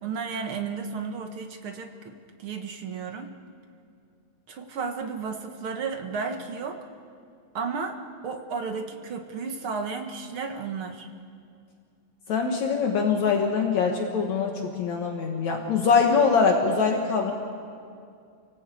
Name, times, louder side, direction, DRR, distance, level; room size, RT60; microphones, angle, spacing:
voice 1, 0.0-2.1 2.4-3.3 4.5-6.8 7.5-11.1, right 5 dB, 55° right, 5 dB, 1.8 m, -33 dB
voice 2, 12.3-17.3, left 5 dB, 65° left, 2 dB, 2.7 m, -23 dB
29.0 x 18.0 x 8.4 m, 2.3 s
omnidirectional pair, 3.5 m